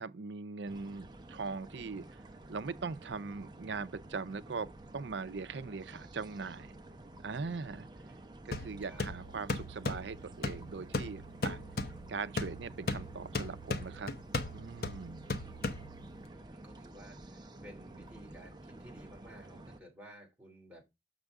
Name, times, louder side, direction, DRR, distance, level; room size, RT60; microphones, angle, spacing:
voice 1, 0.0-2.2 2.5-6.8 7.2-7.9 8.5-11.6 12.1-14.1 14.5-15.3, right 4 dB, 85° right, 0.6 m, -40 dB
sound 1, 0.6-19.8, right 1 dB, 25° right, 0.8 m, -51 dB
sound 2, 8.5-16.2, left 2 dB, 55° left, 0.9 m, -38 dB
voice 2, 15.2-15.6 15.9-20.8, right 1 dB, 10° right, 3.0 m, -55 dB
6.9 x 6.6 x 3.6 m
head